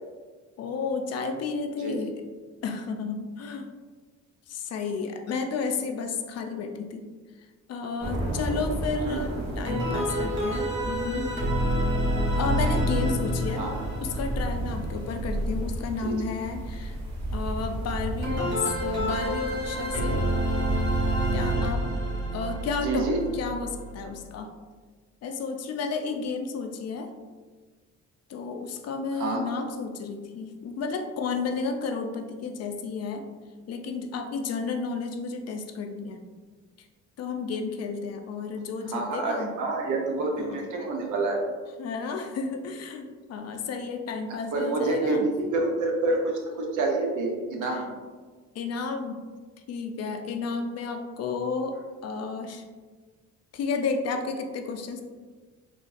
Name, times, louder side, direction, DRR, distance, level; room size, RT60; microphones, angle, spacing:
voice 1, 0.6-2.2 2.6-3.7 4.5-7.0 7.7-11.3 12.3-13.6 14.0-17.0 17.3-20.2 21.3-21.9 22.3-23.1 23.3-24.5 25.2-27.1 28.3-33.2 33.7-36.2 37.2-39.5 40.4-40.6 41.8-45.3 47.6-47.8 48.5-49.2 49.7-51.8 52.0-52.6 53.5-55.0, left 4 dB, 55° left, 5 dB, 0.5 m, -32 dB
sound 1, 8.0-21.5, right 1 dB, 60° right, 1.0 m, -33 dB
voice 2, 9.0-9.4 13.6-13.9 16.0-16.2 22.8-23.2 29.1-29.4 38.9-41.4 44.3-47.9, right 3 dB, 80° right, 1 dB, 0.7 m, -28 dB
sound 2, 9.7-15.5 18.2-24.2, right 1 dB, 40° right, 1.2 m, -28 dB
3.8 x 2.4 x 2.5 m, 1.4 s
cardioid pair, 90°, 30 cm